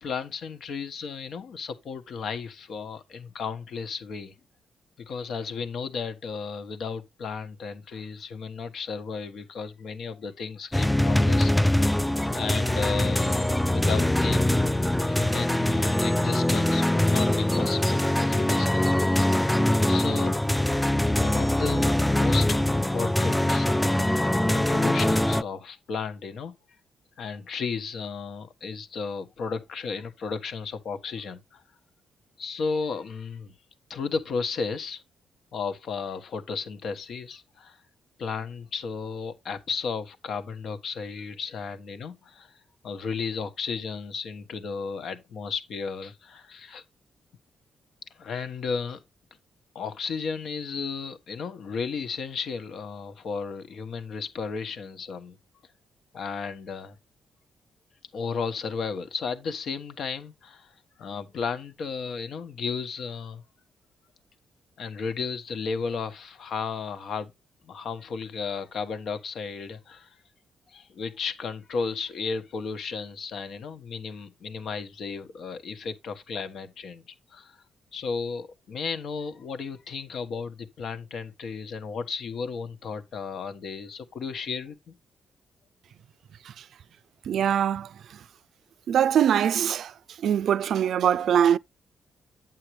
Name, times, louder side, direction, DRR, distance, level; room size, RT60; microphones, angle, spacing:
voice 1, 0.0-4.3 5.0-11.9 12.3-18.8 19.9-20.4 21.0-26.5 27.2-31.6 32.4-33.5 33.9-35.0 35.5-37.8 38.2-42.6 42.8-46.8 48.1-49.0 49.7-55.4 56.1-57.0 58.1-60.7 61.0-63.4 64.8-67.3 67.6-70.2 70.7-77.0 77.3-77.6 77.9-84.9, left 5 dB, 65° left, 1.4 m, -34 dB
sound 1, 10.7-25.4, left 1 dB, 5° left, 0.4 m, -23 dB
voice 2, 87.3-87.9 88.9-89.9 90.2-91.6, right 9 dB, 70° right, 0.4 m, -22 dB
8.9 x 7.6 x 3.2 m
cardioid pair, 95°, 0 cm